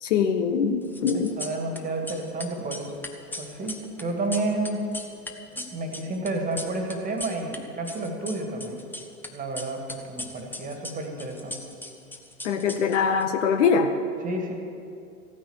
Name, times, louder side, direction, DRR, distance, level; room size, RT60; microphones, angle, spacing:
voice 1, 0.0-1.4 12.4-13.9, left 6 dB, 55° left, 7 dB, 1.1 m, -23 dB
sound 1, 0.8-1.8 2.0-7.6 7.8-9.3 9.6-13.2, left 2 dB, 5° left, 0.7 m, -38 dB
voice 2, 1.1-2.9 3.4-4.9 5.6-8.8 9.3-11.6 14.2-14.5, right 2 dB, 20° right, 3 dB, 2.0 m, -31 dB
15.0 x 9.5 x 7.2 m, 2.5 s
figure-of-eight pair, 105°, 44 cm